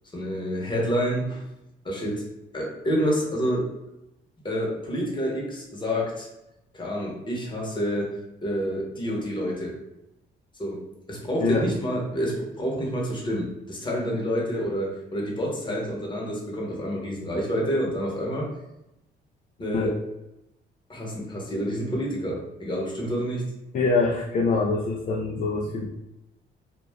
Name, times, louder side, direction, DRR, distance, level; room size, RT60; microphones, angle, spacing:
voice 1, 0.1-1.4 1.8-2.2 2.5-3.7 4.4-6.3 6.7-8.1 8.4-9.8 10.6-18.5 19.6-20.0 20.9-23.5, equal, 25° left, -2 dB, 0.9 m, -28 dB
voice 2, 23.7-25.9, left 3 dB, 40° left, -1 dB, 0.4 m, -24 dB
2.3 x 2.2 x 3.3 m, 0.90 s
cardioid pair, 90°, 20 cm